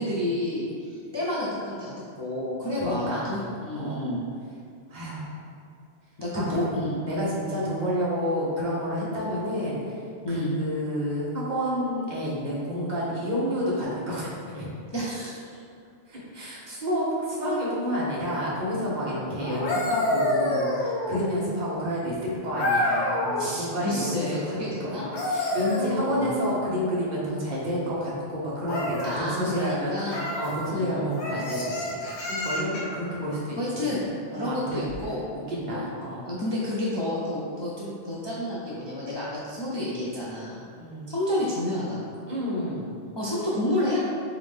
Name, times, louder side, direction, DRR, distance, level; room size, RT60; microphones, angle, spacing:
voice 1, 0.0-4.2 6.2-7.0 7.5-7.6 10.2-10.5 14.9-15.6 23.4-25.1 25.6-26.3 29.0-30.3 30.6-31.2 33.6-35.2 35.7-35.9 36.2-40.6 41.1-42.1 43.2-44.0, left 1 dB, 40° left, -8 dB, 0.3 m, -30 dB
voice 2, 2.8-4.1 4.9-5.3 6.5-6.6 7.0-9.9 10.3-14.7 16.1-24.6 25.3-32.0 32.3-33.9 34.3-34.9 35.3-36.3 40.8-41.1 42.3-43.0, equal, 40° right, -6 dB, 1.0 m, -30 dB
sound 1, 19.4-21.4 22.6-23.5 24.9-26.5 28.6-29.2 30.1-30.5 31.2-33.0 34.8-35.0, left 1 dB, 65° left, 0.9 m, -28 dB
3.5 x 3.2 x 3.5 m, 2.4 s
omnidirectional pair, 1.2 m